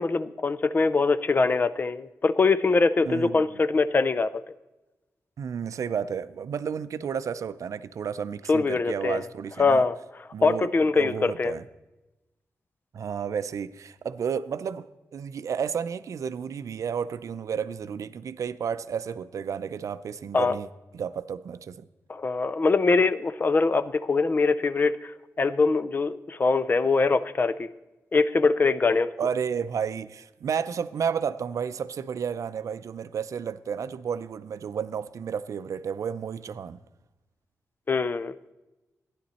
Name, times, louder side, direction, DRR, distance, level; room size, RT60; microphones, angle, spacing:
voice 1, 0.0-4.4 8.5-9.3 9.6-10.0 10.4-11.6 20.3-20.6 22.1-25.1 25.4-27.7 28.1-29.1 37.9-38.3, left 4 dB, 35° left, 0.4 m, -23 dB
voice 2, 3.0-3.4 5.4-9.8 10.3-10.7 10.9-11.7 12.9-14.9 15.1-20.7 20.9-21.9 29.2-36.8, right 7 dB, 65° right, 0.5 m, -32 dB
14.5 x 10.5 x 4.2 m
wide cardioid pair, 135°, 6 cm